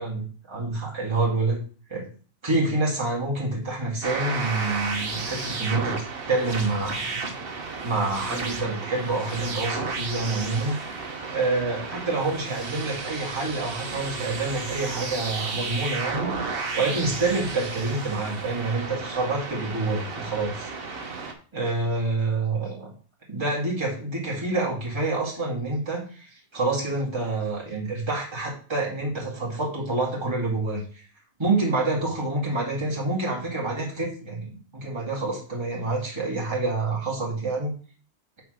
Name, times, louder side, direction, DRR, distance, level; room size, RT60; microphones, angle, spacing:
voice 1, 0.0-1.6 1.9-2.1 2.4-7.1 7.8-10.8 11.3-16.3 16.7-20.7 21.5-22.9 23.3-31.0 31.4-37.7, right 2 dB, 20° right, -4 dB, 2.1 m, -27 dB
sound 1, 4.0-21.3, right 4 dB, 45° right, 1.3 m, -33 dB
5.8 x 4.4 x 6.4 m, 0.40 s
omnidirectional pair, 1.4 m